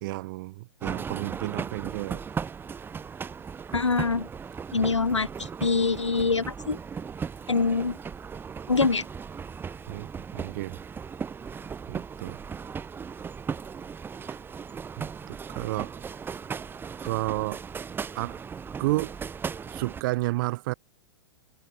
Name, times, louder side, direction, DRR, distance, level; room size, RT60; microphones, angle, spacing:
voice 1, 0.0-2.2 4.8-4.9 9.9-10.8 11.9-12.4 14.3-14.4 15.0-16.0 17.0-17.6 18.2-18.4 18.8-19.2 19.7-20.7, right 21 dB, 45° right, 1.7 m, -31 dB
sound 1, 0.8-20.0, right 6 dB, 15° right, 1.5 m, -37 dB
voice 2, 3.7-4.3 4.7-6.8 7.5-8.0 8.7-9.1, left 4 dB, 85° left, 1.8 m, -24 dB
figure-of-eight pair, 110°, 15 cm